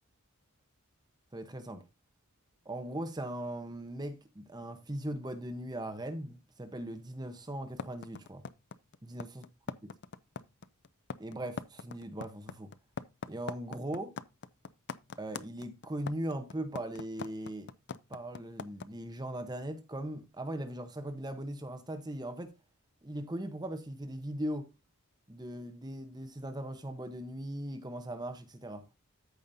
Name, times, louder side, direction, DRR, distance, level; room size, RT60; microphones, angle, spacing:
voice 1, 1.3-1.8 2.6-8.4 9.0-9.4 11.2-12.7 13.3-14.1 15.2-17.7 18.1-22.5 23.0-24.7 25.3-28.9, right 1 dB, 20° right, 1.0 m, -39 dB
sound 1, 7.8-18.8, left 5 dB, 50° left, 0.5 m, -41 dB
14.0 x 5.2 x 2.7 m
head